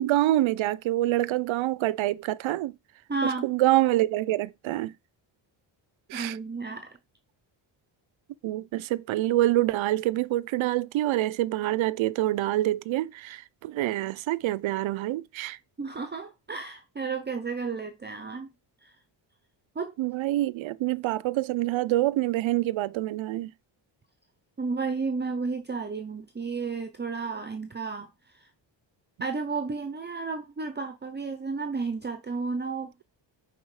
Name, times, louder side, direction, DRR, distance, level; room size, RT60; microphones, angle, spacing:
voice 1, 0.0-2.7 3.2-4.9 6.1-6.4 8.4-15.6 20.0-23.5, right 15 dB, 80° right, 0.5 m, -26 dB
voice 2, 3.1-3.5 6.1-6.9 15.8-18.5 18.8-18.9 19.8-19.9 24.6-28.5 29.2-33.0, right 4 dB, 25° right, 0.7 m, -32 dB
5.5 x 4.1 x 4.7 m
wide cardioid pair, 145°, 46 cm